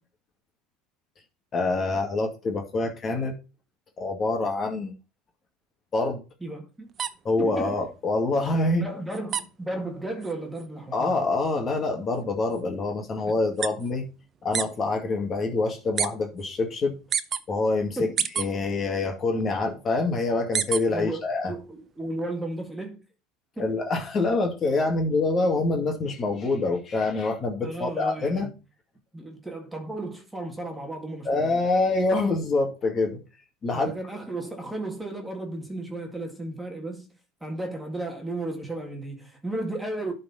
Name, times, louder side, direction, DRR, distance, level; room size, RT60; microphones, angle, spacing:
voice 1, 1.5-3.3 4.0-4.9 5.9-6.2 7.2-8.9 10.9-14.1 14.4-17.0 17.5-18.1 18.4-21.5 23.6-28.5 31.3-33.2 33.6-33.9, left 3 dB, 35° left, 2.2 m, -26 dB
voice 2, 6.4-6.9 7.4-7.9 8.8-11.3 13.3-13.4 18.0-18.3 20.9-23.0 23.6-23.8 27.6-28.5 29.1-31.7 33.7-37.1 37.4-40.1, right 2 dB, 5° right, 2.0 m, -34 dB
sound 1, 6.9-14.8 15.1-16.1 16.4-17.4 17.9-19.0 19.4-21.1 21.4-22.7, right 7 dB, 35° right, 0.7 m, -32 dB
11.0 x 4.5 x 4.3 m
supercardioid pair, 110°, 0 cm